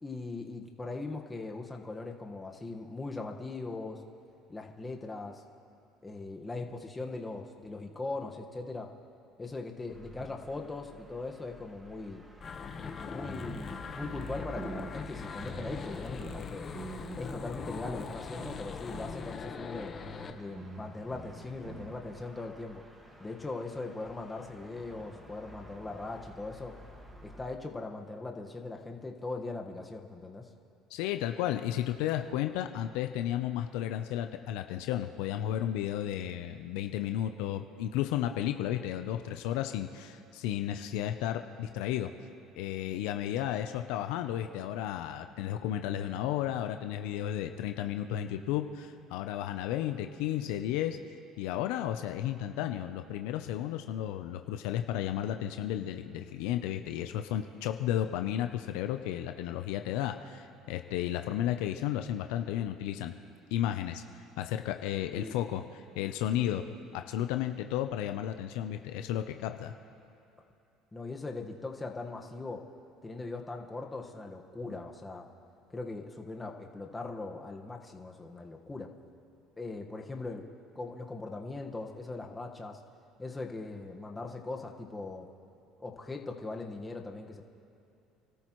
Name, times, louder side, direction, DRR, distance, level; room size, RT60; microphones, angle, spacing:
voice 1, 0.0-4.0 4.5-5.4 6.0-8.9 9.4-12.2 13.1-16.6 17.1-19.9 20.4-22.8 23.2-26.7 27.2-30.4 65.1-65.4 66.4-66.7 70.9-72.6 73.0-75.3 75.7-78.9 79.6-80.5 80.7-82.8 83.2-85.3 85.8-87.4, left 3 dB, 15° left, 1 dB, 1.5 m, -40 dB
sound 1, 9.9-27.6, right 1 dB, 20° right, 1.9 m, -52 dB
sound 2, 12.4-20.3, left 5 dB, 35° left, 1.2 m, -41 dB
sound 3, 13.2-15.1 15.3-15.9 16.2-18.1 18.4-18.6 18.9-21.9, right 3 dB, 45° right, 1.9 m, -46 dB
voice 2, 30.9-42.1 42.6-51.0 51.4-63.1 63.5-64.0 64.4-66.6 66.9-69.7, left 11 dB, 80° left, 7 dB, 0.7 m, -33 dB
28.5 x 13.5 x 3.2 m, 2.8 s
supercardioid pair, 105°, 0 cm